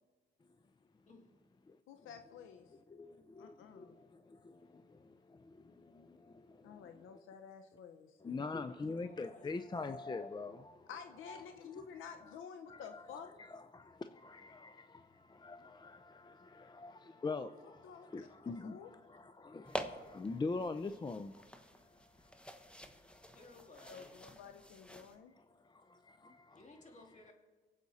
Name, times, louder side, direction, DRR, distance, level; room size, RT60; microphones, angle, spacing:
voice 1, 0.4-1.1 1.7-2.1 2.6-7.2 8.2-10.9 11.3-12.4 12.7-23.4 25.1-26.7, left 3 dB, 20° left, 0.5 m, -45 dB
voice 2, 1.9-2.7 3.4-3.9 6.6-8.2 10.9-13.3 17.8-18.3 18.6-18.9 23.9-25.3, left 7 dB, 85° left, 0.8 m, -51 dB
voice 3, 8.6-9.6 23.2-24.2 26.5-27.3, left 2 dB, 35° left, 2.6 m, -58 dB
sound 1, 19.6-25.2, equal, 5° left, 1.0 m, -48 dB
24.0 x 8.1 x 4.2 m
cardioid pair, 90°, 20 cm